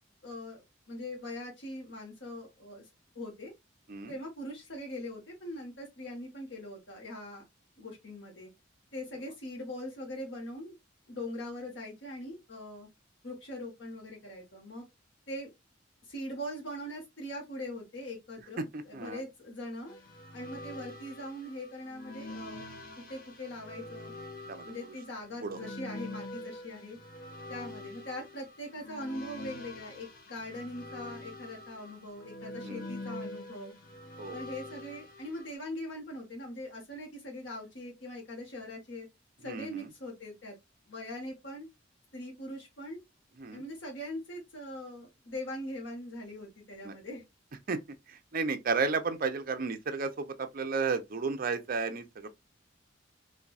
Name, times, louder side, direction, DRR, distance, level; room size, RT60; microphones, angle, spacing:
voice 1, 0.2-2.8 3.1-3.5 4.1-7.4 7.8-8.5 8.9-10.7 11.1-12.9 13.2-14.9 15.3-15.5 16.0-20.0 20.3-22.7 23.0-24.1 24.6-27.0 27.5-33.7 34.3-39.1 39.4-40.5 40.9-41.7 42.1-43.0 43.5-47.2, left 1 dB, 70° left, 1.4 m, -41 dB
sound 1, 19.9-35.5, left 1 dB, 50° left, 0.8 m, -45 dB
voice 2, 39.5-39.9 43.4-43.6 46.8-46.9 47.7-47.8 48.3-52.3, right 4 dB, 50° right, 0.6 m, -32 dB
4.4 x 2.6 x 2.4 m
head